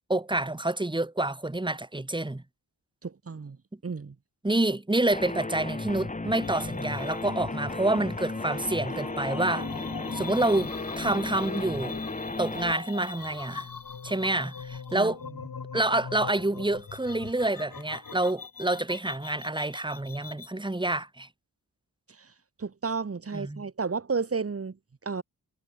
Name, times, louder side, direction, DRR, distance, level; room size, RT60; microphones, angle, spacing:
voice 1, 0.1-2.4 4.4-9.7 10.1-12.0 12.4-13.7 14.0-15.2 15.7-21.3 23.3-23.6, right 2 dB, 10° right, 1.9 m, -28 dB
voice 2, 3.0-3.6 3.8-4.1 14.9-15.1 22.1-22.3 22.6-25.2, right 5 dB, 35° right, 1.8 m, -32 dB
sound 1, 5.1-12.7, left 2 dB, 20° left, 1.8 m, -35 dB
sound 2, 6.4-20.5, left 5 dB, 60° left, 4.9 m, -41 dB
wide cardioid pair, 105°, 39 cm